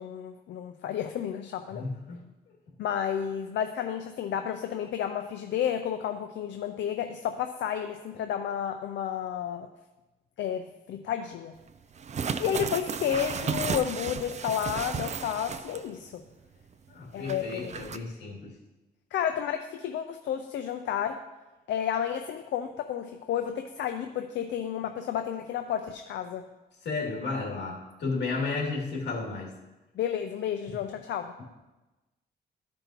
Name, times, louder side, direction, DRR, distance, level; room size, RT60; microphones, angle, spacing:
voice 1, 0.0-1.9 2.8-9.7 10.4-11.5 12.4-16.2 17.1-17.7 19.1-21.2 21.7-26.4 30.0-31.3, left 9 dB, 85° left, 6 dB, 0.5 m, -31 dB
voice 2, 1.7-2.2 16.9-18.5 26.8-29.5 30.7-30.8, left 3 dB, 70° left, -3 dB, 2.3 m, -33 dB
sound 1, 11.9-16.0 16.3-16.4 17.2-18.0, right 6 dB, 40° right, 0.4 m, -34 dB
14.0 x 5.3 x 2.9 m, 1.1 s
cardioid pair, 105°, 18 cm